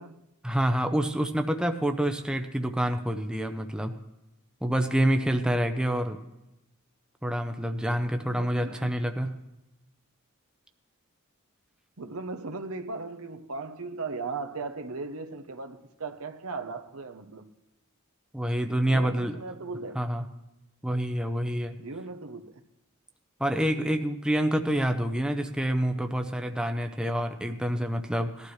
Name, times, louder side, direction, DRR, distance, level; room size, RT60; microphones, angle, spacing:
voice 1, 0.4-3.9 4.6-6.2 7.2-9.3 18.3-19.4 19.9-20.2 20.8-21.7 23.4-28.5, right 1 dB, 5° right, 0.7 m, -27 dB
voice 2, 8.2-8.9 12.0-17.5 18.8-20.0 21.8-22.6, right 3 dB, 75° right, 1.0 m, -37 dB
19.0 x 12.0 x 3.3 m
head